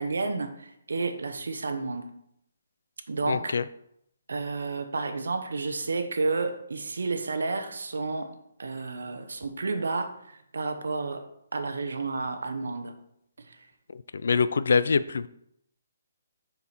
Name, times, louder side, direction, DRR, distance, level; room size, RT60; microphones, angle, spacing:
voice 1, 0.0-2.1 3.1-3.5 4.3-12.9 13.4-13.7, right 3 dB, 85° right, 7 dB, 0.9 m, -31 dB
voice 2, 3.3-3.6 13.9-15.3, left 5 dB, 65° left, 15 dB, 0.4 m, -24 dB
6.8 x 4.7 x 4.4 m, 0.75 s
hypercardioid pair, 175°, 0 cm